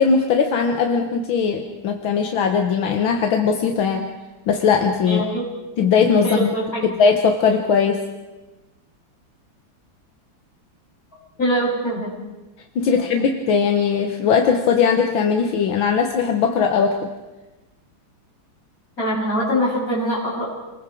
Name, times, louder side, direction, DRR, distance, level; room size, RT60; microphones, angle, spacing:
voice 1, 0.0-4.1 4.5-5.2 5.8-6.5 7.0-8.0 12.8-17.1, left 6 dB, 80° left, 4 dB, 2.0 m, -19 dB
voice 2, 5.1-5.4 6.2-6.9 11.4-12.1 19.0-20.5, equal, 45° left, -6 dB, 8.1 m, -23 dB
28.5 x 21.0 x 4.6 m, 1.1 s
omnidirectional pair, 2.1 m